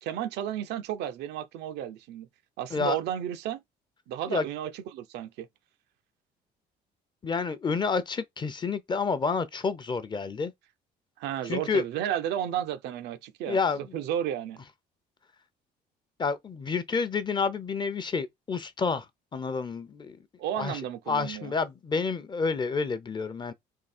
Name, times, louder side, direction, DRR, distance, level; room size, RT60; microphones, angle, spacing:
voice 1, 0.0-2.3 2.6-3.6 4.1-5.5 11.2-14.6 20.4-21.5, right 10 dB, 80° right, 0.6 m, -33 dB
voice 2, 7.2-10.5 11.5-11.8 13.5-14.0 16.2-19.1 19.3-20.2 20.6-20.8 21.1-23.5, left 5 dB, 25° left, 0.6 m, -29 dB
3.7 x 2.8 x 4.3 m
cardioid pair, 110°, 17 cm